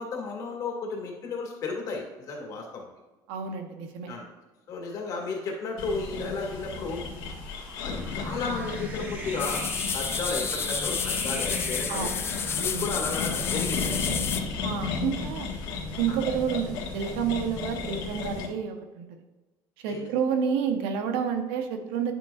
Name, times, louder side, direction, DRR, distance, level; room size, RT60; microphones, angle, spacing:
voice 1, 0.0-2.9 4.1-4.3 4.7-7.1 7.8-9.6 9.9-12.2 12.5-14.0 16.1-16.2 19.9-20.0, left 4 dB, 40° left, 0 dB, 2.0 m, -33 dB
voice 2, 3.3-4.1 11.9-12.2 12.5-12.9 14.6-15.5 16.0-19.2 19.8-22.1, right 7 dB, 80° right, 6 dB, 1.0 m, -29 dB
sound 1, 5.8-18.5, left 4 dB, 60° left, 1.6 m, -34 dB
sound 2, 6.2-14.8, right 2 dB, 20° right, 0.9 m, -41 dB
sound 3, 9.4-14.4, left 7 dB, 25° left, 0.4 m, -31 dB
10.0 x 6.9 x 2.5 m, 1.1 s
cardioid pair, 150°, 9 cm